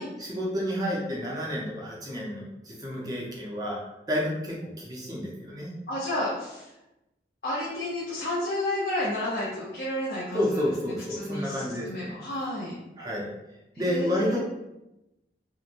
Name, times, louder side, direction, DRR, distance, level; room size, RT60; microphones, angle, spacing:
voice 1, 0.2-3.8 4.1-5.7 10.3-12.2 13.0-13.3 13.8-14.4, equal, 20° right, -3 dB, 0.5 m, -30 dB
voice 2, 5.9-6.7 7.4-11.5 11.8-12.7 13.7-14.4, left 1 dB, 55° left, -7 dB, 0.6 m, -31 dB
2.9 x 2.1 x 2.5 m, 0.93 s
head